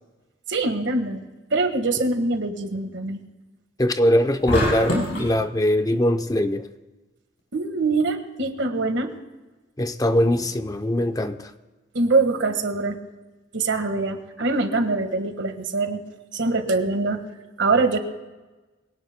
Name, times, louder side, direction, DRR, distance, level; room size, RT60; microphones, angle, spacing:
voice 1, 0.5-1.2 1.5-3.2 5.1-5.2 7.5-9.1 11.9-13.0 13.5-16.0 16.3-17.2 17.6-18.0, right 3 dB, 85° right, 1.6 m, -23 dB
voice 2, 3.8-6.7 9.8-11.5, left 1 dB, 20° left, 0.6 m, -21 dB
sound 1, 4.5-5.3, left 1 dB, 70° left, 5.4 m, -23 dB
23.0 x 17.5 x 2.2 m
head